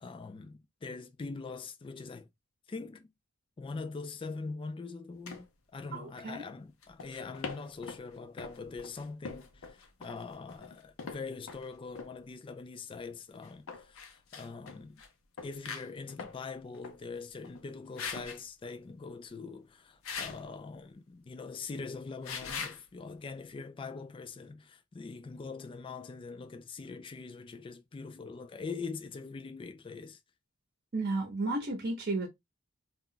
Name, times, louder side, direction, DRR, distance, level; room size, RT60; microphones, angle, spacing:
voice 1, 0.0-2.3 2.7-3.1 3.6-5.5 5.7-15.0 15.4-30.2, left 4 dB, 25° left, 0.3 m, -43 dB
Dusty footsteps, 5.3-5.4 6.8-8.0 8.4-11.7 12.0-12.1 13.4-15.1 15.4-16.4 16.7-17.0 17.4-17.6 18.0-18.4 20.0-20.4 22.2-22.8, left 5 dB, 80° left, 0.6 m, -42 dB
voice 2, 5.9-6.4 30.9-32.3, right 2 dB, 50° right, 0.7 m, -33 dB
2.3 x 2.1 x 3.7 m
head